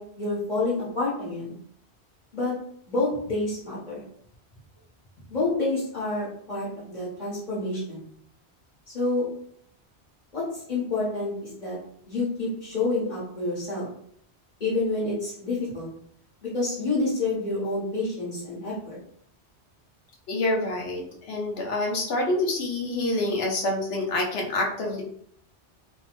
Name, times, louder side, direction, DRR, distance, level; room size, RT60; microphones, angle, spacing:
voice 1, 0.0-1.6 2.3-2.5 2.9-4.0 5.3-8.1 8.9-9.3 10.3-11.8 12.1-13.9 14.6-15.9 16.4-19.0, left 2 dB, 45° left, -8 dB, 1.1 m, -28 dB
voice 2, 20.3-25.0, left 2 dB, 70° left, 0 dB, 0.9 m, -27 dB
2.7 x 2.0 x 2.9 m, 0.66 s
omnidirectional pair, 1.1 m